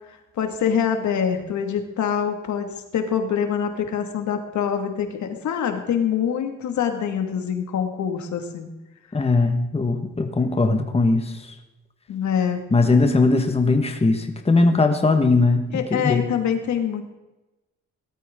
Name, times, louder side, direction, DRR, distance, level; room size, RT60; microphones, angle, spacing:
voice 1, 0.1-8.7 12.1-12.6 15.7-17.0, left 8 dB, 70° left, 5 dB, 2.2 m, -25 dB
voice 2, 9.1-11.4 12.7-16.2, left 3 dB, 20° left, 5 dB, 1.6 m, -19 dB
18.0 x 13.0 x 3.8 m, 1.0 s
cardioid pair, 90°, 30 cm